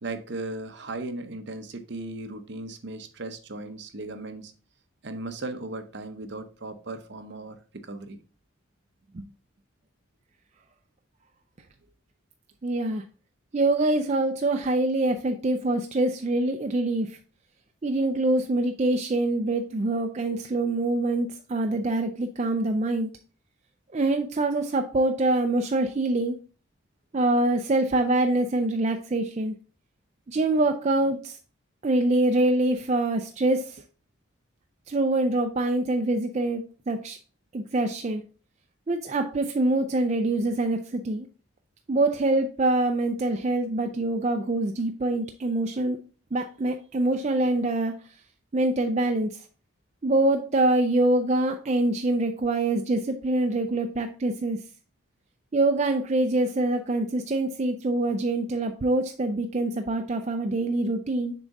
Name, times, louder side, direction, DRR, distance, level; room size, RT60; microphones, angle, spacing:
voice 1, 0.0-4.5 5.0-8.2, right 2 dB, 55° right, 0.8 m, -37 dB
voice 2, 12.6-13.0 13.5-17.2 17.8-23.1 23.9-26.4 27.1-29.6 30.3-31.4 31.8-33.8 34.9-37.2 37.5-38.2 38.9-41.3 41.9-46.0 46.3-47.9 48.5-49.4 50.0-54.6 55.5-61.3, right 2 dB, 35° right, 0.4 m, -25 dB
6.8 x 3.7 x 4.0 m
head